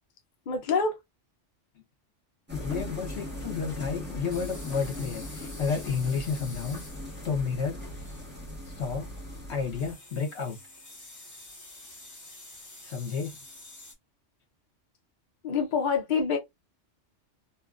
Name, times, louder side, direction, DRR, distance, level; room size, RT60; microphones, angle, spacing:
voice 1, 0.5-1.0 15.4-16.4, left 5 dB, 50° left, 0.7 m, -26 dB
voice 2, 2.5-6.8 7.2-7.8 8.7-9.1 9.5-10.6 12.8-13.3, left 5 dB, 65° left, 1.2 m, -31 dB
sound 1, 2.5-9.9, left 1 dB, 10° right, 1.2 m, -39 dB
sound 2, 3.0-13.9, left 2 dB, 15° left, 1.0 m, -49 dB
2.8 x 2.4 x 2.4 m
omnidirectional pair, 1.2 m